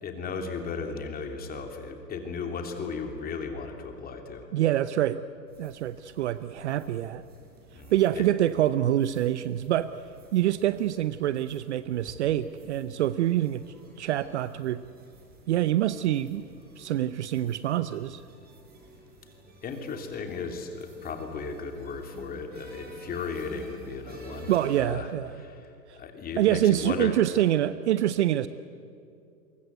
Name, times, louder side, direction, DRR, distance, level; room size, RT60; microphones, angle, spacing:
voice 1, 0.0-4.5 7.7-8.2 19.6-27.2, left 5 dB, 20° left, 4 dB, 3.1 m, -36 dB
voice 2, 4.5-5.2 5.6-7.2 7.9-10.0 10.3-14.8 15.5-16.4 16.8-18.2 24.5-25.4 25.9-26.0 26.4-28.5, right 12 dB, 45° right, 15 dB, 0.8 m, -26 dB
sound 1, 5.5-24.8, right 3 dB, 20° right, 5.6 m, -52 dB
28.5 x 24.0 x 8.1 m, 2.5 s
hypercardioid pair, 125°, 50 cm